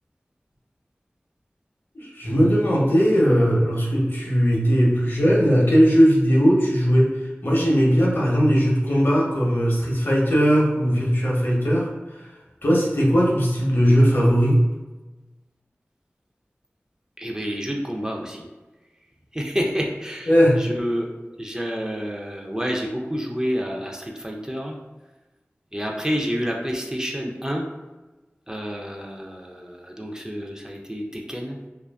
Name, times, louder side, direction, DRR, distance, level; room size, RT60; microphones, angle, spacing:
voice 1, 1.9-14.6 20.3-20.6, equal, 55° left, -4 dB, 0.6 m, -19 dB
voice 2, 17.2-18.5 19.3-20.3 20.6-21.1 21.4-24.8 25.7-27.6 28.5-31.6, equal, 15° right, 0 dB, 0.3 m, -29 dB
2.6 x 2.3 x 2.2 m, 1.1 s
wide cardioid pair, 60°, 4 cm